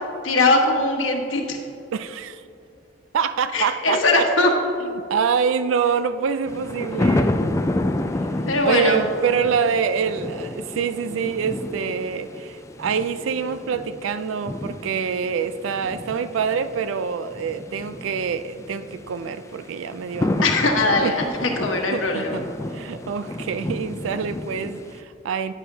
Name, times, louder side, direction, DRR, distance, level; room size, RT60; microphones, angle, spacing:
voice 1, 0.2-1.6 3.5-4.5 8.5-9.0 20.4-22.4, left 2 dB, 90° left, 1 dB, 1.3 m, -20 dB
voice 2, 1.9-2.4 3.1-4.2 5.0-7.4 8.6-20.5 21.0-21.1 21.9-22.5 22.7-25.5, right 6 dB, 90° right, 12 dB, 0.4 m, -25 dB
sound 1, 6.5-25.0, left 1 dB, 15° left, 0.3 m, -30 dB
9.9 x 9.6 x 2.7 m, 2.8 s
head